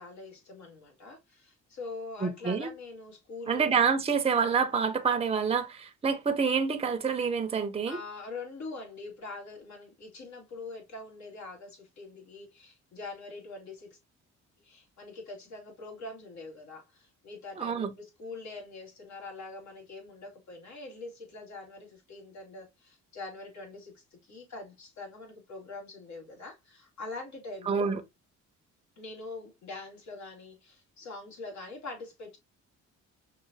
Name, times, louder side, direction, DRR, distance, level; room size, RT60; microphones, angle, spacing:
voice 1, 0.0-3.7 7.9-14.0 14.6-27.9 29.0-32.4, left 3 dB, 70° left, 2.3 m, -44 dB
voice 2, 2.2-2.7 3.5-8.0 17.6-17.9 27.7-28.0, right 6 dB, 20° right, 0.7 m, -27 dB
5.8 x 2.5 x 2.7 m
cardioid pair, 90°, 30 cm